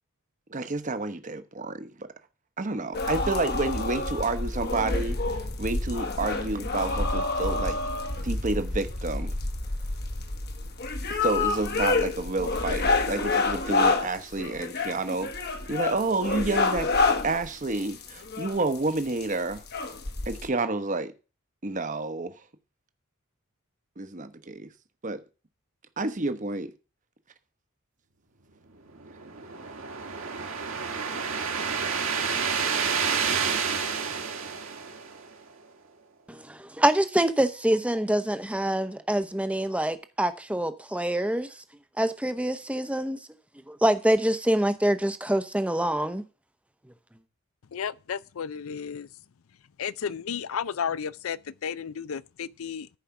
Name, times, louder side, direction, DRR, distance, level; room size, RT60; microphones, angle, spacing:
voice 1, 0.5-2.1 2.6-7.8 8.2-9.3 11.2-16.9 17.2-19.6 20.3-21.1 21.6-22.3 24.0-24.7 25.0-25.2 26.0-26.7, right 3 dB, 35° right, 0.9 m, -29 dB
sound 1, 2.9-20.5, left 3 dB, 50° left, 1.1 m, -28 dB
sound 2, 28.9-35.4, right 6 dB, 70° right, 1.8 m, -29 dB
voice 2, 36.3-41.5 42.0-43.2 43.7-46.2, right 1 dB, 5° right, 0.7 m, -25 dB
voice 3, 47.7-49.1 49.8-52.9, left 7 dB, 75° left, 0.4 m, -33 dB
14.0 x 4.9 x 5.8 m
head